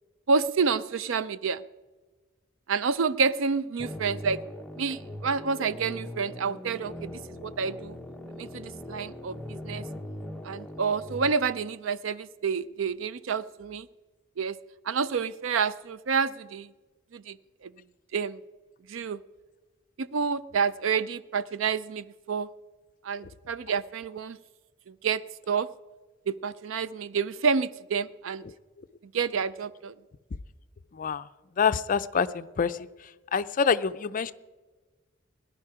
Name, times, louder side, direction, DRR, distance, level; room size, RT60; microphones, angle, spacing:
voice 1, 0.3-1.6 2.7-4.4 4.8-8.0 8.4-9.9 10.4-13.9 14.4-14.6 14.9-16.7 17.1-17.4 17.6-17.7 18.1-18.4 18.9-19.2 20.0-22.5 23.0-24.4 24.9-25.2 25.5-25.7 26.3-28.4 29.1-29.9, right 5 dB, 75° right, 16 dB, 0.5 m, -29 dB
sound 1, 3.8-11.3, left 1 dB, 5° left, 0.7 m, -40 dB
voice 2, 31.6-32.9 33.3-34.3, left 6 dB, 45° left, 14 dB, 0.4 m, -26 dB
18.0 x 11.0 x 4.9 m, 1.3 s
head